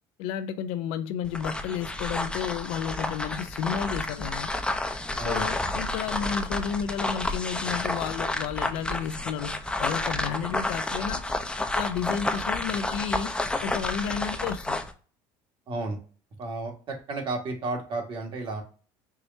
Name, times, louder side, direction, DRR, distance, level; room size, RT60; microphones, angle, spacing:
voice 1, 0.2-4.5 5.2-11.2 11.6-14.9, left 8 dB, 75° left, 0.5 m, -32 dB
sound 1, 1.2-14.9, left 2 dB, 10° left, 0.6 m, -30 dB
voice 2, 15.7-16.0 16.4-18.6, right 3 dB, 50° right, 1.7 m, -32 dB
4.7 x 3.0 x 2.6 m
supercardioid pair, 85°, 11 cm